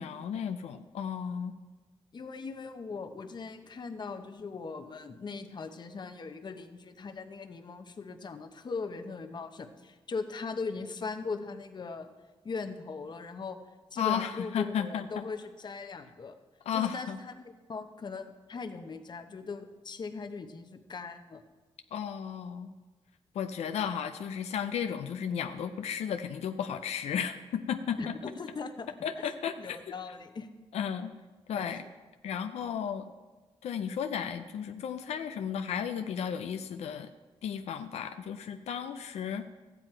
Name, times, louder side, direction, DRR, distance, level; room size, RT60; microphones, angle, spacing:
voice 1, 0.0-1.6 14.0-15.2 16.7-17.2 21.9-22.7 23.3-28.1 29.0-29.8 30.7-31.1 31.5-31.8 32.2-33.1 33.6-37.1 37.4-39.5, left 8 dB, 90° left, 8 dB, 0.5 m, -34 dB
voice 2, 2.1-12.1 12.4-13.6 13.9-16.3 16.7-21.4 28.0-29.3 29.6-30.5 31.5-31.6, left 4 dB, 45° left, 6 dB, 0.9 m, -39 dB
13.5 x 9.2 x 4.5 m, 1.3 s
cardioid pair, 100°, 11 cm